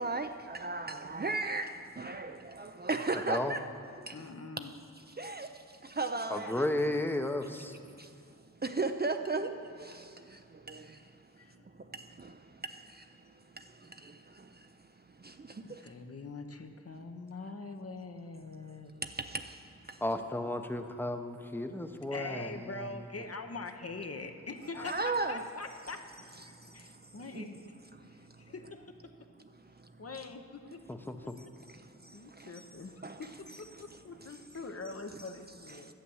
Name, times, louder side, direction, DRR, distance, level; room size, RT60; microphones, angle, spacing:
voice 1, 0.0-1.7 2.0-2.3 2.8-3.6 5.2-5.5 6.0-6.5 8.8-9.5 24.9-25.4 27.4-27.5, right 3 dB, 30° right, 0.5 m, -33 dB
voice 2, 4.1-4.7 11.4-11.7 15.6-19.0 22.1-26.4 26.7-27.6 28.1-29.0 30.0-30.8 31.2-31.5 32.1-33.3 33.6-35.9, left 3 dB, 45° left, 0.9 m, -43 dB
voice 3, 6.3-7.7 20.0-22.5 30.9-31.1, left 1 dB, 5° left, 0.8 m, -33 dB
11.5 x 7.7 x 7.1 m
wide cardioid pair, 55°, 32 cm